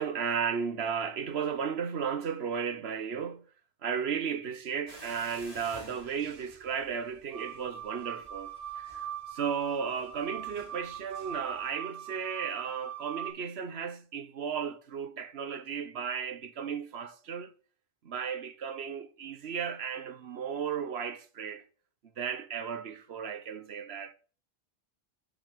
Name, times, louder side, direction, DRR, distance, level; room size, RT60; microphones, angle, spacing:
voice 1, 0.0-3.5 3.8-17.5 18.0-21.6 22.2-24.1, right 7 dB, 80° right, 1.2 m, -34 dB
sound 1, 4.9-11.7, right 1 dB, 35° right, 2.8 m, -54 dB
sound 2, 7.3-13.3, right 9 dB, 20° left, 3.0 m, -41 dB
7.6 x 6.7 x 6.4 m
omnidirectional pair, 1.1 m